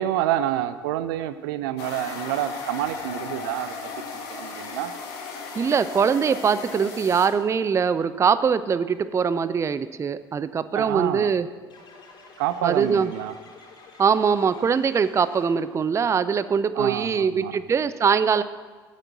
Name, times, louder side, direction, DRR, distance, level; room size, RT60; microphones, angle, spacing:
voice 1, 0.0-3.8 4.1-4.9 10.8-11.3 12.4-13.3 16.8-17.5, right 12 dB, 65° right, 12 dB, 0.6 m, -28 dB
sound 1, 1.8-7.3, left 4 dB, 60° left, 1.9 m, -36 dB
sound 2, 2.8-5.6, left 3 dB, 90° right, 2.6 m, -53 dB
voice 2, 5.6-11.5 12.6-13.1 14.0-18.4, right 6 dB, 25° right, 14 dB, 0.4 m, -22 dB
sound 3, 11.7-15.8, left 4 dB, 40° left, 3.7 m, -49 dB
8.9 x 7.4 x 8.1 m, 1.4 s
figure-of-eight pair, 60°, 12 cm